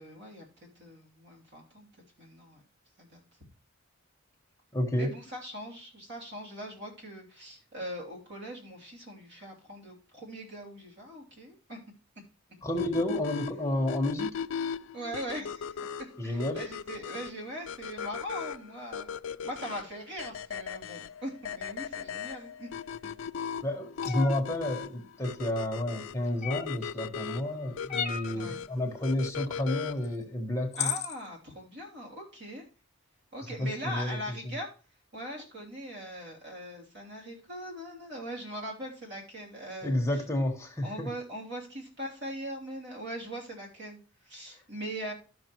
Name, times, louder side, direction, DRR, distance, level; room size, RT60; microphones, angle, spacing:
voice 1, 0.0-1.9 2.2-2.6 3.0-3.2 4.9-11.8 14.9-15.8 16.2-19.1 19.4-22.7 28.3-28.6 30.8-32.6 33.3-34.7 35.1-40.2 40.8-45.1, equal, 55° right, -2 dB, 3.1 m, -41 dB
voice 2, 4.7-5.1 12.6-14.4 16.2-16.6 23.6-30.9 33.6-34.2 34.4-34.5 39.8-41.1, left 1 dB, 15° left, 2 dB, 1.4 m, -31 dB
sound 1, 12.8-30.2, left 7 dB, 70° left, 0.4 m, -38 dB
sound 2, 24.0-24.4 26.4-26.9 27.9-28.4 30.0-30.1 30.7-31.2, left 8 dB, 35° left, 1.0 m, -33 dB
13.0 x 6.2 x 3.0 m, 0.35 s
head